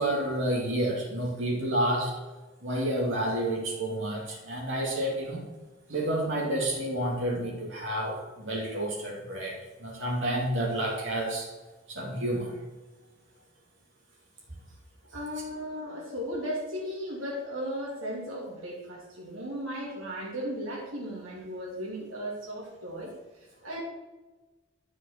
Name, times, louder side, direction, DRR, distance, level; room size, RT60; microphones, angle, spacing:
voice 1, 0.0-2.1 2.6-5.5 5.9-11.5 11.9-12.5, right 1 dB, 65° right, -3 dB, 2.7 m, -30 dB
voice 2, 15.1-23.8, equal, 90° right, -5 dB, 3.1 m, -36 dB
11.5 x 6.3 x 6.7 m, 1.2 s
head